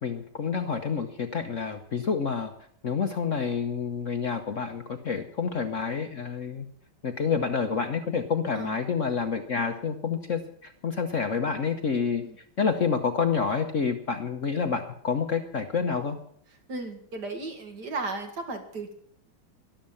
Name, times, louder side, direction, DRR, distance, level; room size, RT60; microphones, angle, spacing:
voice 1, 0.0-2.5 2.8-6.7 7.0-12.2 12.6-16.2, left 5 dB, 45° left, 6 dB, 1.1 m, -28 dB
voice 2, 16.5-18.9, right 3 dB, 55° right, 5 dB, 2.4 m, -35 dB
13.0 x 11.5 x 7.2 m, 0.64 s
omnidirectional pair, 2.2 m